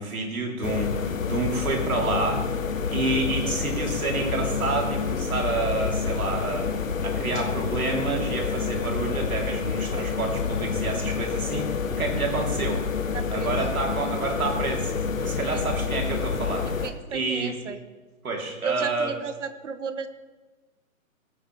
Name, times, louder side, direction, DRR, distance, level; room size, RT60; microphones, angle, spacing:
voice 1, 0.0-2.4 2.9-6.7 7.0-12.8 13.3-16.8 17.1-17.6 18.2-19.1, right 3 dB, 90° right, 0 dB, 3.2 m, -29 dB
sound 1, 0.6-16.9, left 5 dB, 70° left, 1.2 m, -28 dB
Walk footsteps, 6.0-10.1, left 3 dB, 15° left, 1.7 m, -47 dB
voice 2, 13.1-13.5 15.5-15.7 16.8-17.8 18.6-20.1, right 6 dB, 60° right, 11 dB, 1.0 m, -34 dB
18.0 x 8.6 x 3.3 m, 1.2 s
hypercardioid pair, 170°, 41 cm